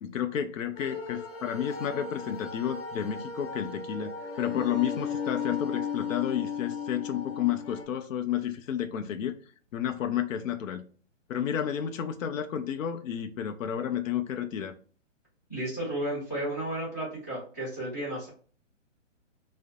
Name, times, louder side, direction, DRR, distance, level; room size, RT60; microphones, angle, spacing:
voice 1, 0.0-9.4 9.7-10.8 11.3-14.8, left 9 dB, 90° left, 0.5 m, -31 dB
sound 1, 0.8-7.8, left 6 dB, 50° left, 0.7 m, -36 dB
voice 2, 15.5-18.3, right 1 dB, 15° left, 0.7 m, -33 dB
2.3 x 2.0 x 2.8 m
hypercardioid pair, 180°, 38 cm